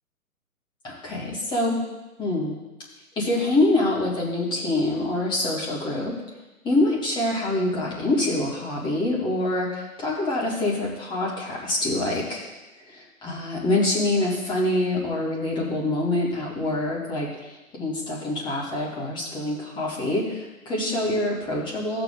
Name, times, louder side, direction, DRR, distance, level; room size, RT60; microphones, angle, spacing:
voice 1, 0.8-1.8 2.2-2.6 3.2-6.1 6.6-12.5 12.9-22.0, left 2 dB, 10° left, -5 dB, 2.0 m, -25 dB
15.5 x 6.9 x 3.6 m, 1.0 s
figure-of-eight pair, 135°, 43 cm